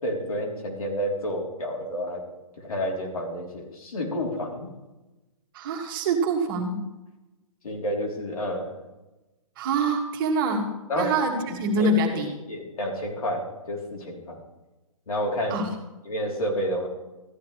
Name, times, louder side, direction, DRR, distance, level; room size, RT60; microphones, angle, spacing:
voice 1, 0.0-2.2 2.6-4.7 7.6-8.7 10.9-11.1 11.7-14.4 15.1-15.6 16.1-16.9, equal, 85° left, -1 dB, 3.5 m, -30 dB
voice 2, 5.5-6.8 9.6-10.7 11.0-12.3 15.5-15.7, right 2 dB, 40° right, 2 dB, 2.0 m, -25 dB
14.0 x 10.5 x 3.3 m, 1.1 s
hypercardioid pair, 150°, 18 cm